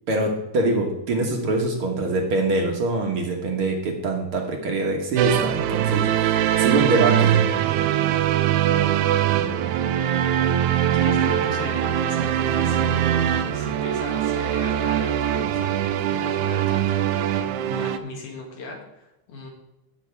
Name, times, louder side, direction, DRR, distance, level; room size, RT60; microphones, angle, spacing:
voice 1, 0.1-7.4, right 2 dB, 55° right, 1 dB, 1.9 m, -24 dB
sound 1, 5.2-18.0, right 10 dB, 80° right, 2.1 m, -22 dB
voice 2, 10.9-13.1 13.5-19.5, left 3 dB, 80° left, -1 dB, 3.7 m, -38 dB
17.5 x 6.8 x 3.4 m, 0.94 s
omnidirectional pair, 3.5 m